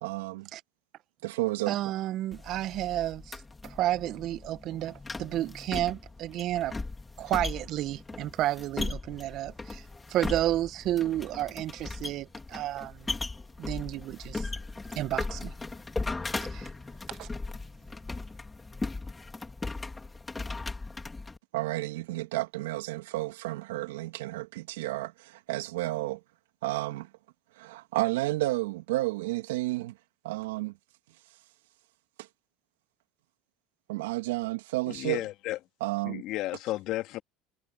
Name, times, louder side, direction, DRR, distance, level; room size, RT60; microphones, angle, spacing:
voice 1, 0.0-0.5 1.2-1.8 21.5-26.2 26.6-27.1 27.6-29.9 30.2-30.7 32.2-32.3 33.9-35.2 35.8-36.2, right 19 dB, 85° right, 2.1 m, -31 dB
voice 2, 1.7-3.4 3.6-6.7 7.2-9.8 10.1-13.1 13.6-14.5 15.0-15.5 16.5-16.7 17.1-17.3, right 13 dB, 55° right, 1.3 m, -31 dB
sound 1, 2.3-21.4, left 3 dB, 15° left, 4.0 m, -38 dB
voice 3, 34.9-35.6 36.0-37.2, left 16 dB, 65° left, 2.3 m, -33 dB
hypercardioid pair, 85°, 0 cm